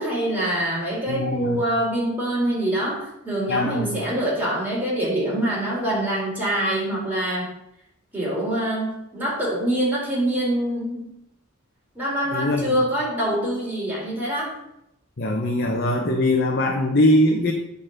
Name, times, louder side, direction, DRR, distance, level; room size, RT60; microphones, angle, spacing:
voice 1, 0.0-7.6 8.1-11.1 11.9-14.5, right 1 dB, 10° right, -6 dB, 3.9 m, -25 dB
voice 2, 1.1-1.6 3.5-3.9 12.3-12.8 15.2-17.5, left 1 dB, 50° left, 0 dB, 1.0 m, -21 dB
9.8 x 4.1 x 6.5 m, 0.79 s
head